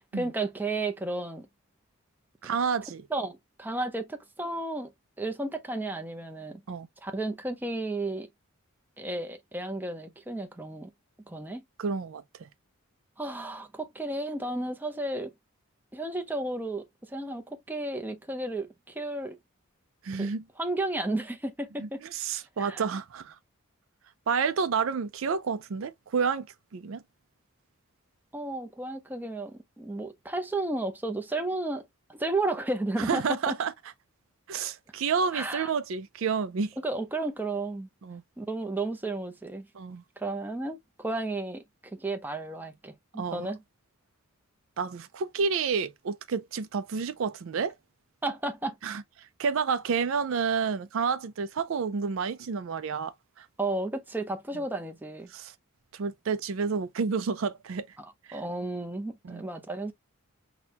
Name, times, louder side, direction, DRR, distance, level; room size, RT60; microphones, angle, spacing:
voice 1, 0.1-1.5 3.1-4.9 5.2-6.6 7.0-8.3 9.0-10.9 11.3-11.6 13.2-15.3 15.9-19.4 20.2-20.3 20.6-22.0 22.6-22.8 28.3-31.8 32.1-33.5 35.3-35.7 36.8-37.9 38.4-39.7 40.2-41.6 41.9-43.6 48.2-48.7 53.6-55.3 58.0-59.9, right 2 dB, 10° right, 0.5 m, -33 dB
voice 2, 2.4-3.0 6.7-6.9 11.8-12.5 20.0-20.4 21.8-23.4 24.3-26.5 26.7-27.0 33.0-33.7 34.5-36.7 38.0-38.2 39.7-40.0 43.2-43.5 44.8-47.7 48.8-53.5 55.3-55.5 55.9-57.9 58.3-58.4 59.2-59.4, right 5 dB, 60° right, 0.4 m, -30 dB
6.0 x 2.2 x 2.8 m
head